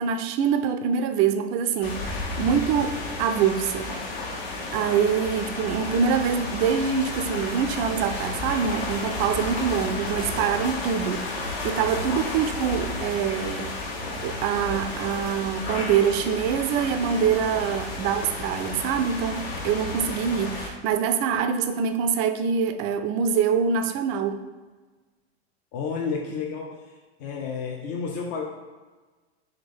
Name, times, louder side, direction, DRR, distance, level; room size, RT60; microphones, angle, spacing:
voice 1, 0.0-4.0 4.7-13.8 14.2-24.4, right 7 dB, 40° right, 10 dB, 0.4 m, -25 dB
sound 1, 1.8-20.7, left 3 dB, 70° left, 1.1 m, -32 dB
voice 2, 25.7-26.7 27.2-28.4, left 5 dB, 50° left, 0 dB, 0.6 m, -30 dB
3.5 x 3.2 x 3.6 m, 1.3 s
hypercardioid pair, 105°, 32 cm